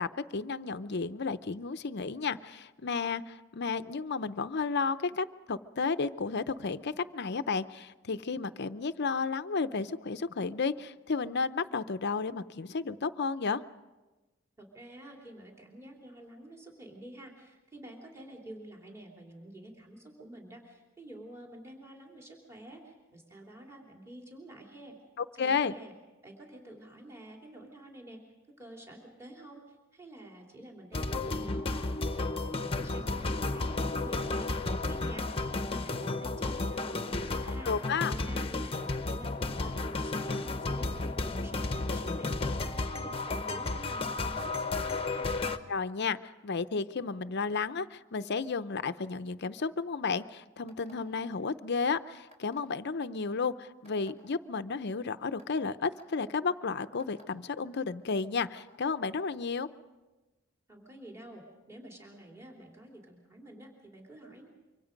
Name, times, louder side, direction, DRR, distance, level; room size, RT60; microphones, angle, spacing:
voice 1, 0.0-13.6 25.2-25.7 37.6-38.1 45.7-59.7, left 4 dB, 55° left, 12 dB, 0.7 m, -32 dB
voice 2, 14.6-25.0 25.3-25.9 26.2-35.3 35.7-37.7 38.1-45.3 60.7-64.5, right 1 dB, 15° right, -1 dB, 3.1 m, -49 dB
sound 1, 30.9-45.6, left 2 dB, 30° left, 1.0 m, -33 dB
sound 2, 50.7-51.1 52.3-52.7 53.8-54.1 54.9-55.0 55.4-55.5 55.9-56.1 57.0-57.2 58.4-58.7, left 1 dB, 35° right, 5.1 m, -56 dB
25.5 x 24.5 x 5.2 m, 1.1 s
head